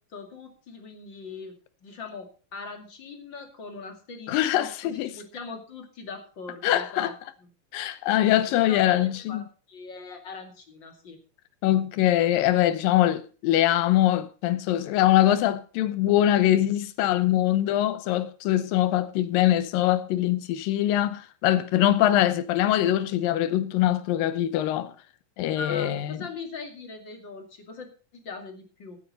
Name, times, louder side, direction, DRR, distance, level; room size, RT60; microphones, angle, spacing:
voice 1, 0.1-1.5 1.8-7.1 7.4-7.5 8.2-8.3 8.6-11.2 25.5-29.0, left 4 dB, 35° left, 2.6 m, -41 dB
voice 2, 4.3-5.1 6.6-7.1 7.7-9.4 11.6-24.9 25.4-26.2, left 13 dB, 80° left, 2.7 m, -23 dB
16.5 x 9.4 x 4.2 m
omnidirectional pair, 4.0 m